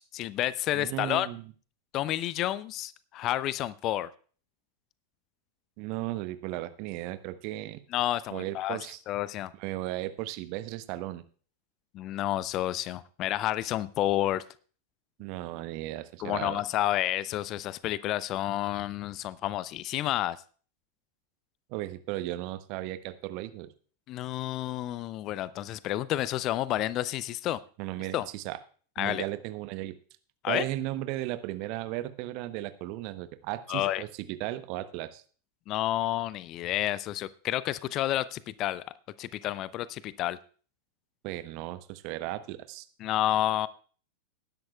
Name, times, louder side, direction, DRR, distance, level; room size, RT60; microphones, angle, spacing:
voice 1, 0.0-1.3 1.9-4.1 7.9-8.8 9.1-9.5 11.9-14.4 16.2-20.4 24.1-27.6 28.1-28.3 29.0-29.2 30.4-30.6 33.7-34.0 35.7-38.9 39.2-40.4 43.0-43.7, left 14 dB, 35° left, 19 dB, 0.5 m, -30 dB
voice 2, 0.7-1.5 5.8-7.8 8.3-9.0 9.6-11.2 15.2-16.6 21.7-23.7 27.8-28.6 29.0-29.9 30.5-35.2 41.2-42.9, right 16 dB, 45° right, 13 dB, 0.8 m, -35 dB
19.0 x 10.5 x 2.3 m, 0.41 s
figure-of-eight pair, 90°, 0 cm